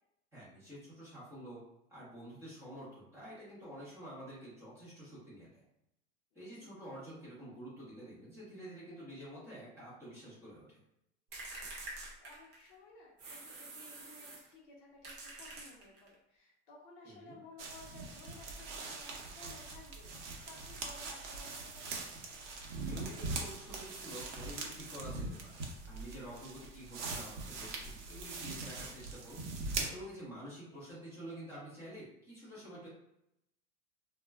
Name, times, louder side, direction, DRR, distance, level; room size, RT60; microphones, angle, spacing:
voice 1, 0.3-1.6 1.9-5.6 6.3-10.8 17.0-17.4 22.7-32.9, right 1 dB, 10° right, -10 dB, 0.8 m, -49 dB
voice 2, 6.3-6.8 11.8-21.9 30.7-30.8, left 3 dB, 45° left, -2 dB, 0.6 m, -57 dB
sound 1, 11.3-12.7 13.2-14.5 15.0-16.1, right 2 dB, 30° right, 0.4 m, -47 dB
sound 2, 17.6-29.9, right 3 dB, 80° right, 0.8 m, -42 dB
2.2 x 2.1 x 3.3 m, 0.81 s
supercardioid pair, 175°, 36 cm